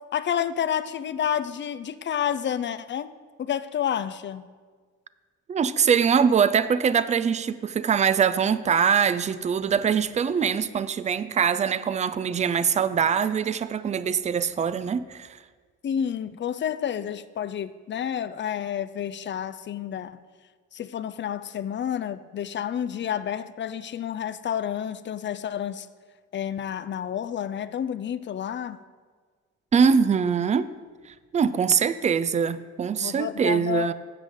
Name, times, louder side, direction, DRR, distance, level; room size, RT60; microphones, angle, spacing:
voice 1, 0.1-3.1 3.4-4.5 15.8-20.2 20.7-25.9 26.3-28.8 33.0-33.9, left 9 dB, 40° left, 14 dB, 0.4 m, -30 dB
voice 2, 5.5-15.3 29.7-30.7 31.3-33.9, right 7 dB, 25° right, 15 dB, 0.4 m, -23 dB
11.5 x 7.6 x 3.7 m, 1.5 s
cardioid pair, 90°, 30 cm